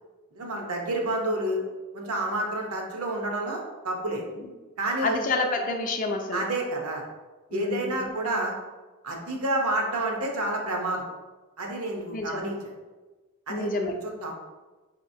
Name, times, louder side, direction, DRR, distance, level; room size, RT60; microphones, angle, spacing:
voice 1, 0.3-1.6 1.9-4.2 4.8-5.2 6.3-7.1 7.5-8.6 9.0-11.1 11.6-12.7 13.5-14.5, right 1 dB, 80° right, 1 dB, 0.7 m, -29 dB
voice 2, 5.0-6.4 7.5-8.1 12.1-12.5 13.5-13.9, left 3 dB, 40° left, 3 dB, 0.4 m, -28 dB
4.7 x 2.9 x 2.6 m, 1.2 s
head